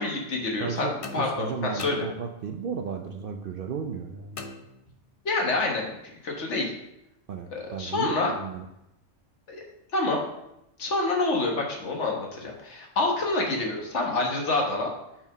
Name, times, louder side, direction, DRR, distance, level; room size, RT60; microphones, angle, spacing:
voice 1, 0.0-2.1 5.2-6.0 6.2-6.7 7.5-8.3 9.5-9.6 9.9-10.2 10.8-14.9, left 2 dB, 65° left, 0 dB, 1.6 m, -27 dB
voice 2, 0.6-4.4 7.3-8.7, right 6 dB, 60° right, 4 dB, 0.6 m, -34 dB
sound 1, 1.0-2.7 4.4-5.3, left 3 dB, 45° left, 0.4 m, -43 dB
5.9 x 4.5 x 5.3 m, 0.83 s
omnidirectional pair, 1.3 m